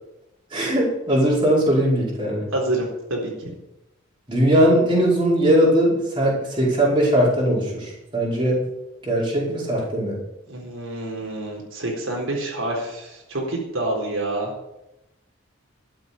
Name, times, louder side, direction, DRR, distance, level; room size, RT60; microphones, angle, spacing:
voice 1, 0.5-2.4 4.3-8.6 9.0-10.2, equal, 25° right, -5 dB, 5.1 m, -20 dB
voice 2, 2.5-3.5 10.5-14.5, right 2 dB, 80° right, -1 dB, 4.1 m, -27 dB
13.0 x 7.8 x 8.6 m, 0.92 s
head